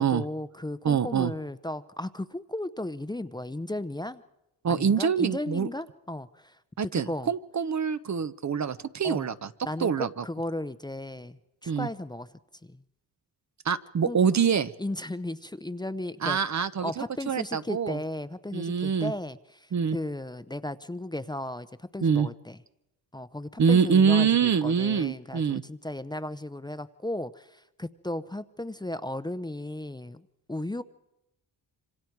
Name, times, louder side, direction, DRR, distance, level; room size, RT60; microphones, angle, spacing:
voice 1, 0.0-4.2 4.7-7.3 9.0-9.3 9.6-12.3 12.6-12.8 14.1-14.2 14.8-16.4 16.8-22.6 23.1-30.8, left 1 dB, 10° left, 12 dB, 0.7 m, -35 dB
voice 2, 0.8-1.3 4.6-5.7 6.8-9.5 9.8-10.2 11.7-11.9 13.6-14.7 16.2-18.0 18.5-19.1 19.7-20.0 22.0-22.3 23.6-25.6, right 6 dB, 45° right, 12 dB, 0.9 m, -25 dB
26.5 x 25.5 x 4.7 m, 0.89 s
cardioid pair, 75°, 39 cm